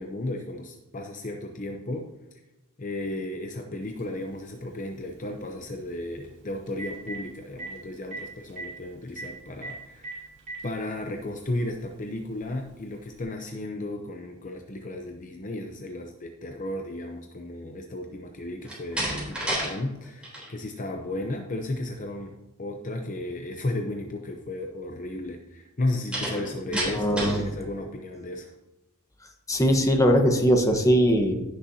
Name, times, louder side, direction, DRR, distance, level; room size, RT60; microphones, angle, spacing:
voice 1, 0.0-2.1 2.8-10.3 10.6-22.3 22.6-28.5, left 1 dB, 35° left, 4 dB, 0.7 m, -34 dB
Telephone, 4.0-4.1 6.2-6.3 6.7-7.2 7.6-7.7 8.1-8.2 8.5-8.7 9.2-9.3 9.6-9.7 10.0-10.6 11.6-11.7 13.1-13.2, right 3 dB, 35° right, 3.3 m, -36 dB
Slam, 18.6-19.7 20.0-20.5 26.1-27.5, right 1 dB, 5° right, 3.5 m, -30 dB
voice 2, 26.9-27.4 29.5-31.3, equal, 15° left, 3 dB, 1.1 m, -20 dB
15.5 x 6.8 x 2.8 m, 1.0 s
head